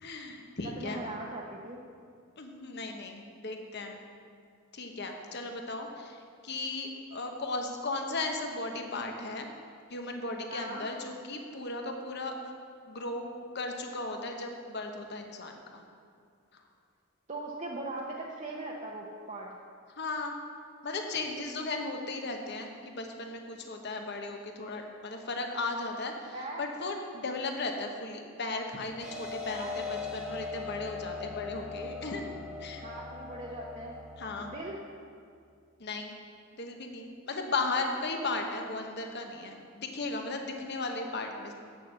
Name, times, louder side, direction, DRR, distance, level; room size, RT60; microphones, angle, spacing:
voice 1, 0.0-1.0 2.4-4.0 4.7-9.5 9.9-12.3 12.9-13.3 13.5-15.8 16.5-16.6 19.9-20.3 20.8-32.3 32.6-32.8 34.2-34.5 35.8-36.2 36.5-41.5, left 3 dB, 55° left, 3 dB, 1.1 m, -36 dB
voice 2, 0.6-1.8 10.5-10.8 17.3-19.5 26.3-26.7 29.5-29.8 32.8-33.9 34.4-34.8, right 2 dB, 35° right, -3 dB, 0.8 m, -39 dB
sound 1, 29.0-34.6, left 4 dB, ahead, 1.2 m, -40 dB
8.4 x 6.7 x 7.6 m, 2.3 s
head